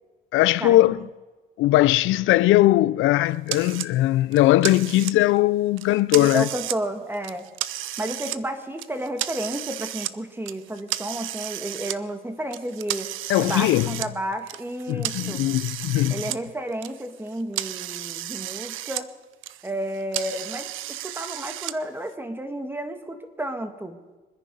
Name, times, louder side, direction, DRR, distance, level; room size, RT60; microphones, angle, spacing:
voice 1, 0.3-1.0 1.6-6.5 13.3-13.9 14.9-16.2, left 16 dB, 90° left, 0.4 m, -19 dB
sound 1, 3.5-3.9 4.3-5.4 5.8-6.8 7.1-8.4 8.8-10.1 10.5-12.0 12.5-16.4 16.7-19.0 19.3-21.7, right 14 dB, 90° right, 0.6 m, -33 dB
voice 2, 6.1-7.5 8.0-15.4 16.1-19.1 19.6-24.0, right 1 dB, 10° right, 2.0 m, -32 dB
26.0 x 10.0 x 5.5 m
cardioid pair, 90°, 20 cm